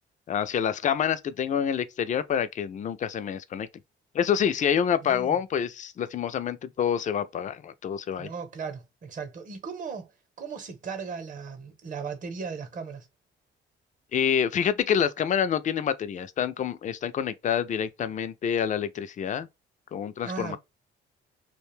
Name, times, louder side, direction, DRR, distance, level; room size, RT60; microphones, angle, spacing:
voice 1, 0.3-3.7 4.1-8.3 14.1-19.5 19.9-20.6, left 8 dB, 40° left, 0.4 m, -27 dB
voice 2, 5.0-5.4 8.2-10.1 10.4-13.1 20.2-20.6, right 5 dB, 40° right, 0.9 m, -37 dB
2.5 x 2.2 x 3.1 m
cardioid pair, 90°, 20 cm